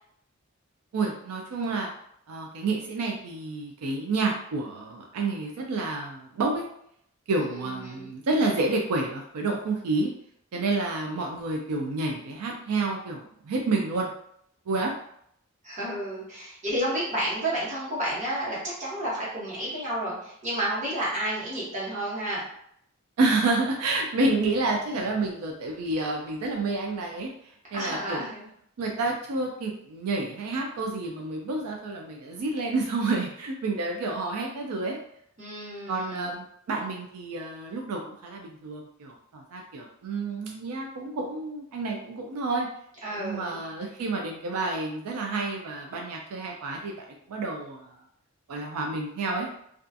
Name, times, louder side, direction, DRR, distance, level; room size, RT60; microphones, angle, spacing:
voice 1, 0.9-1.9 2.3-6.6 7.3-10.1 10.5-14.1 14.7-14.9 23.2-28.3 28.8-35.0 35.9-42.7 43.1-48.0 48.5-49.5, right 3 dB, 85° right, 0 dB, 0.4 m, -29 dB
voice 2, 7.4-8.1 15.6-22.4 27.7-28.5 35.4-36.3 43.0-43.6, right 1 dB, 30° right, -8 dB, 1.0 m, -31 dB
2.4 x 2.3 x 2.5 m, 0.70 s
head